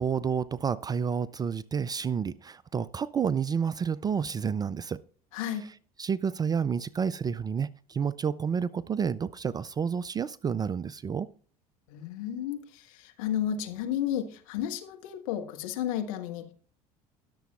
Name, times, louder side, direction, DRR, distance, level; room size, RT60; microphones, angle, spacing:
voice 1, 0.0-5.0 6.0-11.3, right 6 dB, 20° right, 21 dB, 0.3 m, -30 dB
voice 2, 5.3-5.7 11.9-16.5, left 10 dB, 65° left, 4 dB, 1.4 m, -32 dB
20.5 x 6.8 x 2.3 m, 0.43 s
figure-of-eight pair, 65°, 20 cm